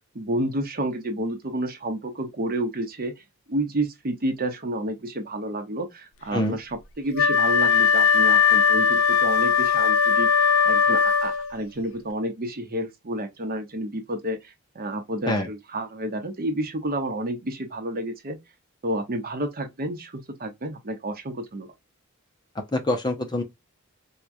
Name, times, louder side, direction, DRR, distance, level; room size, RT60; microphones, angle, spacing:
voice 1, 0.1-3.1 3.5-10.3 10.7-18.4 18.8-21.7, right 1 dB, 45° right, 0.9 m, -30 dB
Wind instrument woodwind instrument, 7.1-11.6, left 6 dB, 65° left, 0.5 m, -19 dB
voice 2, 22.7-23.4, left 1 dB, 20° left, 0.6 m, -25 dB
4.6 x 2.3 x 2.5 m
head